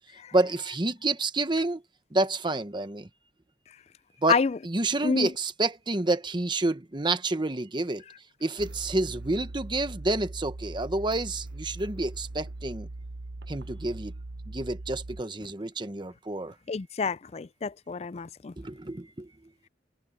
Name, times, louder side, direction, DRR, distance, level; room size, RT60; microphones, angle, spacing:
voice 1, 0.3-1.8 2.1-3.1 4.2-4.4 4.6-8.0 8.4-12.9 13.5-14.1 14.5-16.5 18.6-19.3, right 2 dB, 25° right, 1.0 m, -29 dB
sound 1, 8.6-15.2, right 2 dB, 70° right, 0.8 m, -40 dB
voice 2, 16.7-18.5, left 5 dB, 35° left, 0.4 m, -28 dB
head